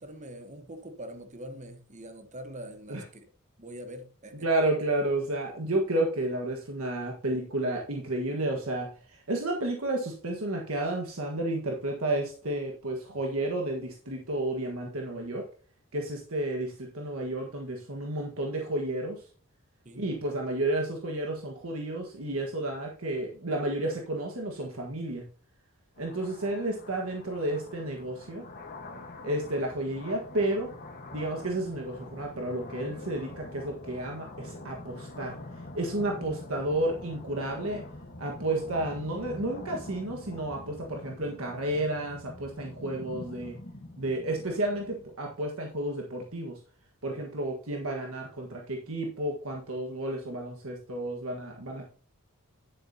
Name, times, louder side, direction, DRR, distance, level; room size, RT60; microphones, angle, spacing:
voice 1, 0.0-3.2 3.6-4.5 19.8-20.1, right 1 dB, 35° right, 1.2 m, -43 dB
voice 2, 4.4-15.5 15.9-19.2 19.9-25.2 26.0-28.4 29.2-30.7 31.1-35.4 35.7-37.8 38.2-43.5 44.0-46.5 47.0-51.9, right 1 dB, 65° right, 1.6 m, -31 dB
sound 1, 26.0-45.1, left 2 dB, 40° left, 1.4 m, -45 dB
10.5 x 7.8 x 2.8 m
head